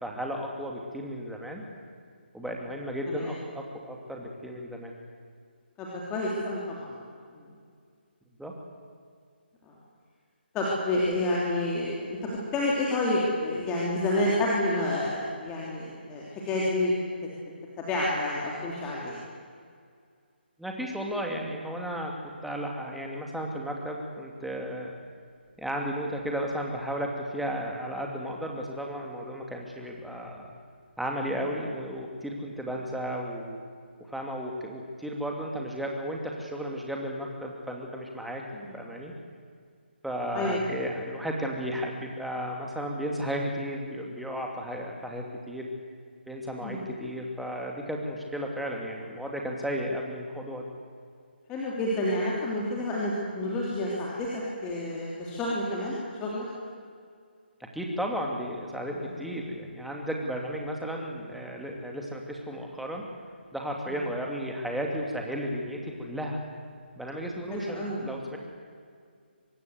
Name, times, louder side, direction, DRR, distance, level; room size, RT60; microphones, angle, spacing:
voice 1, 0.0-1.6 2.3-4.9 8.4-8.5 20.6-22.1 22.4-24.9 25.6-30.5 31.0-33.6 34.1-38.4 38.7-39.1 40.0-45.6 46.3-50.7 57.7-63.0 63.5-66.4 67.0-68.4, equal, ahead, 0 dB, 2.5 m, -34 dB
voice 2, 5.8-7.0 9.7-9.8 10.5-16.9 17.8-19.2 38.5-38.8 40.3-40.6 46.6-46.8 51.5-56.5 59.0-59.1 63.9-64.0 67.5-68.0, left 1 dB, 15° left, -5 dB, 3.1 m, -29 dB
24.5 x 22.0 x 8.1 m, 2.1 s
figure-of-eight pair, 150°, 6 cm